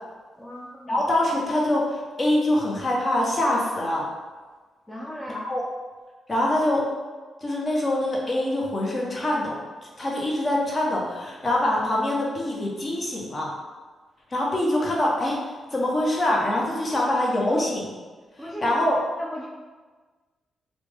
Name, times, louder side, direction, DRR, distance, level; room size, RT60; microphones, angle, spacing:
voice 1, 0.4-1.0 4.9-5.4 16.9-17.1 18.4-18.8 19.2-19.5, equal, 10° left, -3 dB, 0.4 m, -36 dB
voice 2, 0.9-4.1 5.4-5.6 6.3-6.9 7.4-9.6 10.0-13.5 14.3-15.4 15.7-17.9 18.6-19.0, left 1 dB, 35° left, -3 dB, 0.8 m, -24 dB
3.3 x 2.0 x 3.3 m, 1.4 s
supercardioid pair, 60°, 0 cm